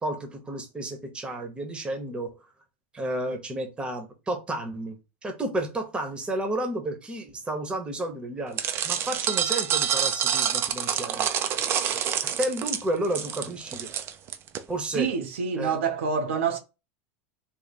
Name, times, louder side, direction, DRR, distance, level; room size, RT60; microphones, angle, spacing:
voice 1, 0.0-2.3 2.9-5.0 5.2-8.6 8.8-11.3 12.2-13.9 14.7-15.1 15.6-15.8, right 1 dB, 15° right, 1.0 m, -31 dB
sound 1, 8.6-14.6, right 9 dB, 40° right, 0.5 m, -27 dB
voice 2, 14.9-16.6, right 6 dB, 85° right, 0.8 m, -27 dB
3.4 x 2.2 x 4.1 m
supercardioid pair, 125°, 7 cm